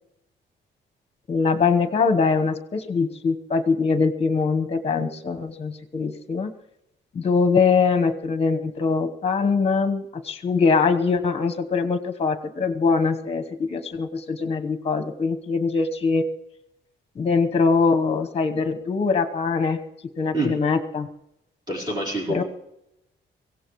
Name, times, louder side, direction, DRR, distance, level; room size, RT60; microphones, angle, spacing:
voice 1, 1.3-6.5 7.1-16.3 17.1-19.8 20.2-21.1 22.3-22.4, left 4 dB, 30° left, 8 dB, 1.2 m, -22 dB
voice 2, 21.7-22.4, right 1 dB, 20° right, -3 dB, 4.4 m, -26 dB
23.5 x 16.5 x 3.2 m, 0.86 s
wide cardioid pair, 155°, 20 cm